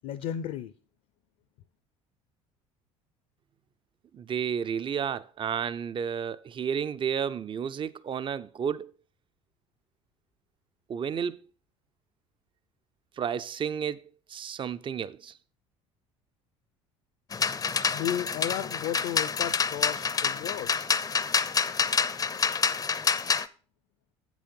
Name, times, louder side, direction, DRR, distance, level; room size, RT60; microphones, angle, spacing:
voice 1, 0.0-0.7 17.7-20.9, left 10 dB, 60° left, 0.7 m, -34 dB
voice 2, 4.1-8.9 10.9-11.4 13.2-15.3, right 7 dB, 30° right, 0.6 m, -32 dB
sound 1, 17.3-23.5, left 5 dB, 25° left, 0.6 m, -27 dB
8.3 x 6.1 x 5.4 m
hypercardioid pair, 70°, 16 cm